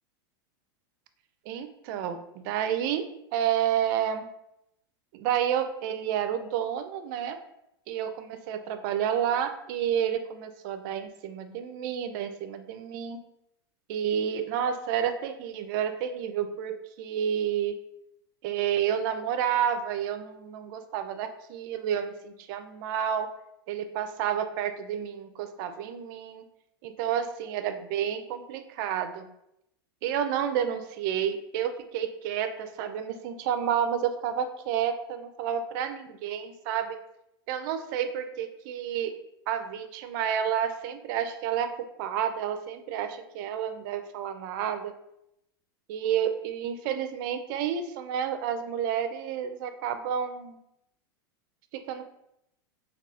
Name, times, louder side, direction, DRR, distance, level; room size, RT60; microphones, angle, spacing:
voice 1, 1.5-3.0 3.3-4.3 5.1-7.4 7.9-13.2 13.9-17.7 18.4-23.3 23.7-26.5 26.8-29.3 30.0-37.0 37.5-39.1 39.5-41.7 42.0-44.9 45.9-50.6 51.7-52.1, right 9 dB, 60° right, 8 dB, 0.4 m, -30 dB
4.0 x 2.3 x 2.3 m, 0.81 s
hypercardioid pair, 120°, 12 cm